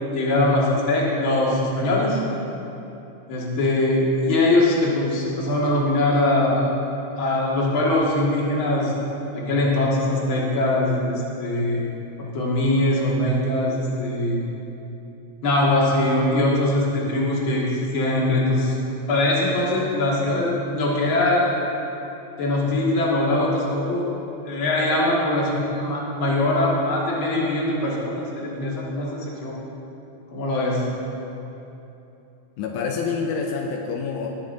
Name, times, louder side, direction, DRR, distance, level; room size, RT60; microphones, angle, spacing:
voice 1, 0.1-2.2 3.3-6.7 7.2-8.9 9.3-11.8 12.3-14.4 15.4-18.8 19.1-21.5 22.4-24.1 24.5-29.6 30.3-30.8, left 1 dB, 45° left, -5 dB, 2.6 m, -22 dB
voice 2, 32.6-34.3, left 5 dB, 80° left, 1 dB, 2.2 m, -27 dB
19.5 x 7.4 x 3.8 m, 2.9 s
omnidirectional pair, 3.5 m